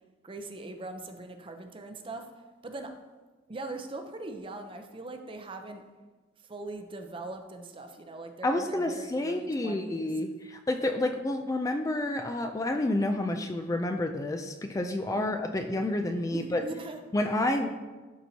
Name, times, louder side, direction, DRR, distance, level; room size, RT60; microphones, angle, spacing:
voice 1, 0.2-2.3 2.6-3.0 3.5-5.8 6.5-10.1 15.2-15.5 16.3-17.0, right 2 dB, 30° right, 6 dB, 0.6 m, -41 dB
voice 2, 8.4-16.6 17.1-17.7, left 1 dB, 20° left, 5 dB, 0.3 m, -29 dB
12.0 x 4.4 x 2.8 m, 1.3 s
head